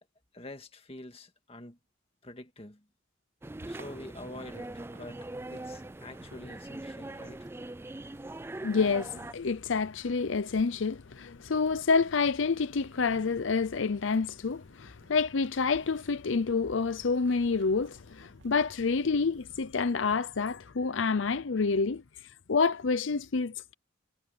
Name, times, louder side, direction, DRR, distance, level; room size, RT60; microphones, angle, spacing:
voice 1, 0.3-1.8 2.2-2.8 3.7-5.3 5.5-7.5, left 1 dB, 30° left, 2.0 m, -46 dB
sound 1, 3.4-9.3, right 2 dB, 10° right, 0.3 m, -42 dB
sound 2, 3.5-20.2, right 1 dB, 65° right, 3.4 m, -59 dB
voice 2, 8.6-22.0 22.5-23.7, left 4 dB, 75° left, 0.6 m, -28 dB
head